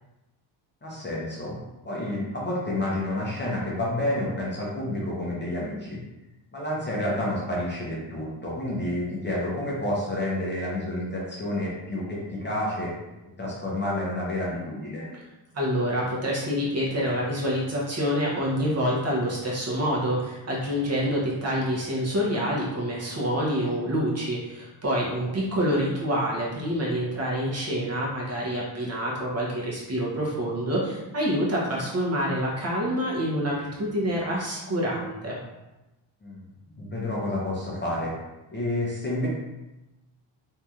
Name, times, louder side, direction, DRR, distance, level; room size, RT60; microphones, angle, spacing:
voice 1, 0.8-6.0 6.5-12.9 13.4-15.2 36.2-36.4 36.8-38.1 38.5-39.3, left 1 dB, 25° left, -5 dB, 0.6 m, -29 dB
voice 2, 15.5-35.4, equal, 35° right, -5 dB, 0.7 m, -27 dB
3.1 x 2.7 x 2.3 m, 1.0 s
wide cardioid pair, 155°, 46 cm